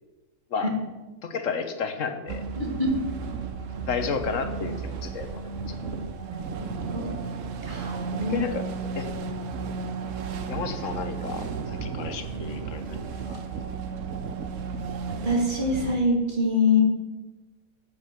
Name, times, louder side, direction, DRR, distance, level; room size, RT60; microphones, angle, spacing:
voice 1, 1.2-2.4 3.9-5.8 8.3-8.6 9.0-9.1 10.5-13.0 13.3-13.4, left 6 dB, 70° left, 8 dB, 1.4 m, -32 dB
sound 1, 2.3-16.0, right 5 dB, 70° right, 1.2 m, -33 dB
voice 2, 2.6-3.0 6.3-7.1 7.6-8.4 15.1-16.8, left 2 dB, 35° right, 1 dB, 2.1 m, -25 dB
15.5 x 5.5 x 5.8 m, 1.2 s
omnidirectional pair, 1.4 m